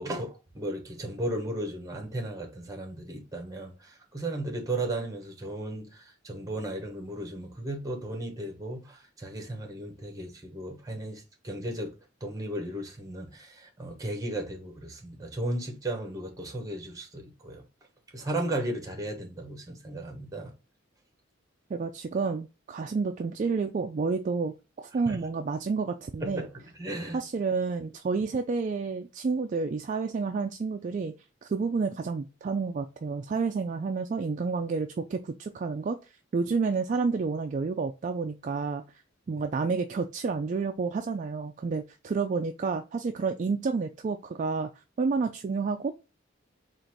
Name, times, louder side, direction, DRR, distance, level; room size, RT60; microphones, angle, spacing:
voice 1, 0.0-11.9 12.2-17.6 18.1-20.5 25.0-25.2 26.2-27.2 39.3-39.4, right 1 dB, 20° right, 1.0 m, -35 dB
voice 2, 21.7-26.5 27.1-31.1 31.4-36.0 36.3-38.8 39.3-44.7 45.0-45.9, right 4 dB, 40° right, 0.3 m, -30 dB
3.9 x 2.5 x 4.5 m
head